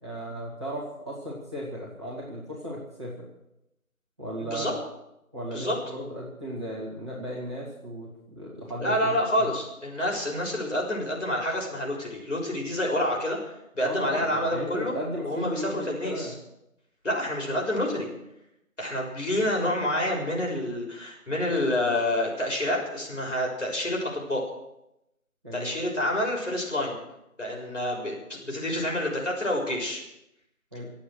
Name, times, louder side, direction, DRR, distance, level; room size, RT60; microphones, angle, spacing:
voice 1, 0.0-3.3 4.2-4.8 5.3-9.5 13.8-16.4 25.4-25.7 30.7-30.9, equal, 20° right, -7 dB, 2.7 m, -36 dB
voice 2, 8.8-13.4 13.7-14.9 15.2-16.3 17.0-18.1 18.8-24.5 25.5-27.0 27.4-30.0, left 1 dB, 55° left, -1 dB, 6.4 m, -28 dB
25.5 x 8.6 x 6.4 m, 0.85 s
figure-of-eight pair, 170°, 44 cm